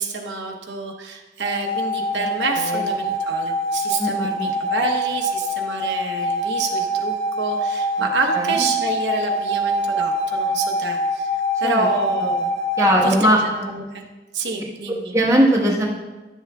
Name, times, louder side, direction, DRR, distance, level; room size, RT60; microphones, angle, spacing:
voice 1, 0.0-11.3 11.6-12.5 12.8-14.0 14.3-15.1, right 3 dB, 90° right, 2 dB, 0.9 m, -28 dB
sound 1, 1.4-13.1, equal, 40° right, 0.5 m, -24 dB
voice 2, 2.6-2.9 4.0-4.5 8.0-8.1 8.3-8.7 11.6-11.9 12.2-12.3 12.8-13.8 15.1-15.9, equal, 15° right, -4 dB, 1.2 m, -20 dB
11.0 x 7.2 x 2.3 m, 1.2 s
head